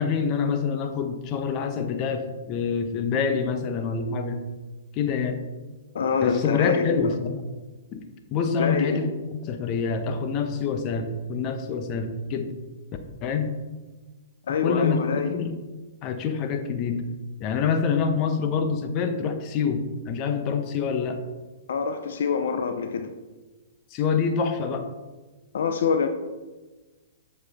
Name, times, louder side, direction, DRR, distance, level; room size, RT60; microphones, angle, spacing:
voice 1, 0.0-4.4 4.9-5.4 6.2-7.4 7.9-8.0 8.3-12.5 13.2-13.5 14.5-15.6 16.0-17.0 17.4-21.2 23.9-24.9, left 5 dB, 35° left, 7 dB, 0.9 m, -26 dB
voice 2, 5.9-7.1 8.6-9.0 14.5-15.4 21.7-23.1 25.5-26.1, left 6 dB, 70° left, 7 dB, 0.6 m, -25 dB
7.7 x 6.6 x 3.6 m, 1.2 s
hypercardioid pair, 125°, 0 cm